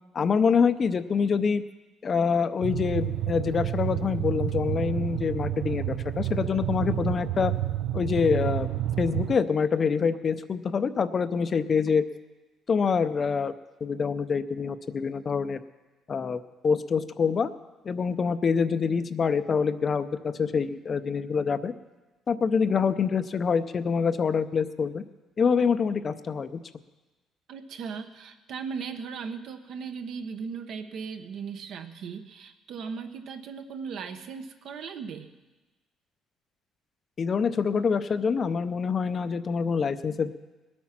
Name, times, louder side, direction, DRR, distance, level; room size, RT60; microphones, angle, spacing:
voice 1, 0.1-1.6 2.0-7.5 7.9-12.0 12.7-13.5 13.8-15.6 16.1-17.5 17.8-21.7 22.3-25.0 25.4-26.6 37.2-40.3, left 6 dB, 35° left, 11 dB, 0.6 m, -26 dB
sound 1, 2.6-9.4, right 13 dB, 90° right, 0.5 m, -30 dB
voice 2, 27.5-35.3, right 6 dB, 60° right, 7 dB, 1.0 m, -37 dB
20.0 x 8.6 x 5.9 m, 1.2 s
cardioid pair, 130°, 0 cm